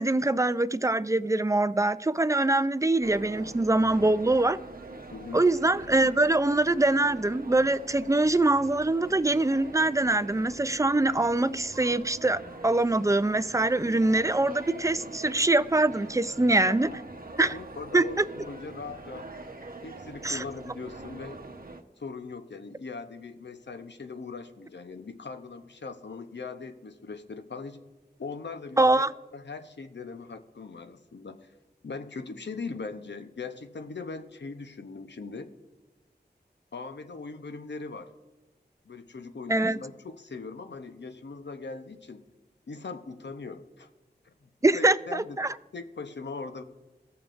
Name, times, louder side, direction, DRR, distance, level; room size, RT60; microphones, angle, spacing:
voice 1, 0.0-4.6 5.3-16.9 17.4-17.5 17.9-18.1 20.2-20.4 28.8-29.1 39.5-39.8 44.6-45.5, right 2 dB, 20° right, 0.3 m, -24 dB
sound 1, 3.0-21.8, right 2 dB, 55° right, 0.9 m, -44 dB
voice 2, 5.1-5.4 16.4-16.8 17.4-19.3 19.8-21.4 22.0-27.8 28.2-29.0 29.3-31.5 31.8-35.5 36.7-38.1 38.9-42.2 42.7-43.9 44.4-45.4 45.7-46.6, left 4 dB, 80° left, 0.7 m, -40 dB
17.5 x 7.0 x 2.5 m
wide cardioid pair, 60°, 18 cm